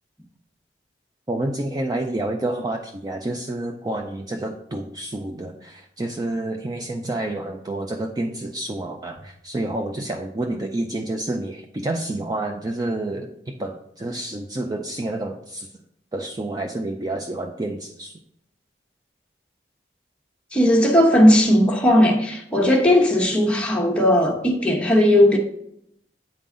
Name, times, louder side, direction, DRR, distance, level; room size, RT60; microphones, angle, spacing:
voice 1, 1.3-15.7 16.1-18.1, right 1 dB, 20° right, 0.4 m, -29 dB
voice 2, 20.5-25.4, left 1 dB, 5° left, 1.0 m, -17 dB
9.0 x 3.8 x 3.7 m
head